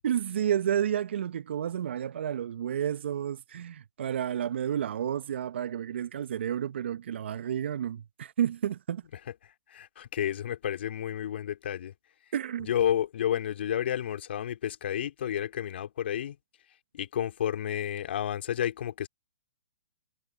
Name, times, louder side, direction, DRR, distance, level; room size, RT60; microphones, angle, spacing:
voice 1, 0.0-9.0 12.3-12.7, right 9 dB, 60° right, 1.1 m, -31 dB
voice 2, 9.7-11.9 12.7-16.4 16.9-19.1, left 10 dB, 60° left, 3.5 m, -31 dB
hypercardioid pair, 130°, 7 cm